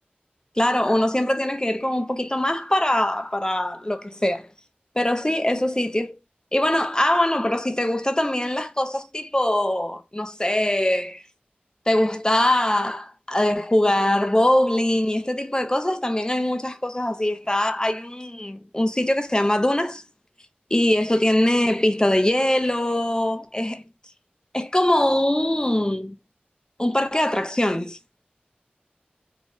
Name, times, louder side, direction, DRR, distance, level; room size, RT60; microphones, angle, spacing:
voice 1, 0.6-4.5 5.0-6.2 6.5-11.2 11.9-20.0 20.7-23.8 24.5-26.2 26.8-28.0, left 1 dB, 20° left, 0.4 m, -22 dB
2.5 x 2.2 x 3.4 m
wide cardioid pair, 45°, 3 cm